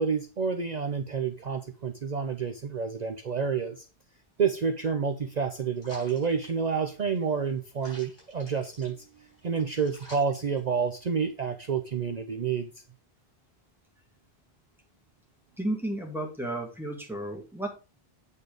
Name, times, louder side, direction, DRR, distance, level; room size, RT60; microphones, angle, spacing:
voice 1, 0.0-3.9 4.4-12.7, right 6 dB, 45° right, 6 dB, 0.7 m, -29 dB
sound 1, 5.8-11.2, equal, 50° left, 4.8 m, -52 dB
voice 2, 15.6-17.7, right 1 dB, ahead, 0 dB, 2.2 m, -33 dB
8.4 x 4.4 x 5.0 m, 0.33 s
omnidirectional pair, 1.0 m